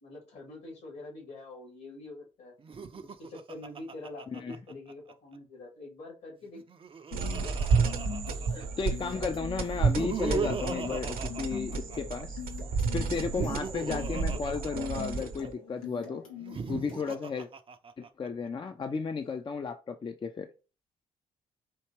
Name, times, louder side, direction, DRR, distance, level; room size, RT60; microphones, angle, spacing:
voice 1, 0.0-2.5 3.0-6.6 7.3-7.6, left 2 dB, 70° left, 2.3 m, -45 dB
Laughter, 2.6-5.1 6.4-8.8 9.7-12.2 13.1-15.5 16.3-18.3, right 6 dB, 30° right, 0.5 m, -38 dB
sound 1, 7.1-17.4, left 7 dB, 90° left, 0.8 m, -44 dB
sound 2, 7.1-15.5, right 5 dB, 60° right, 0.8 m, -31 dB
voice 2, 8.5-12.4 12.9-16.2 16.7-17.5 18.0-20.5, left 5 dB, 30° left, 0.5 m, -34 dB
4.5 x 2.8 x 3.0 m
hypercardioid pair, 40°, 17 cm